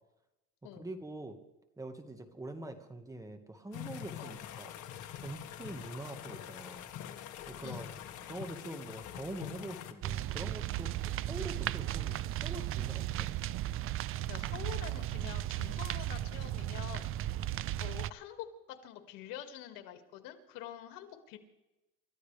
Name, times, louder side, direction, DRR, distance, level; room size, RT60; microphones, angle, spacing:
voice 1, 0.6-1.4 1.8-4.7 5.1-6.9 7.5-7.9 8.3-13.3, right 2 dB, 10° right, 6 dB, 1.6 m, -44 dB
sound 1, 3.7-9.9, left 10 dB, 65° left, 1.6 m, -45 dB
sound 2, 10.0-18.1, right 13 dB, 40° right, 0.4 m, -35 dB
voice 2, 14.3-17.1 17.8-21.4, left 11 dB, 90° left, 6 dB, 2.1 m, -46 dB
28.5 x 14.0 x 3.4 m, 0.98 s
cardioid pair, 145°, 32 cm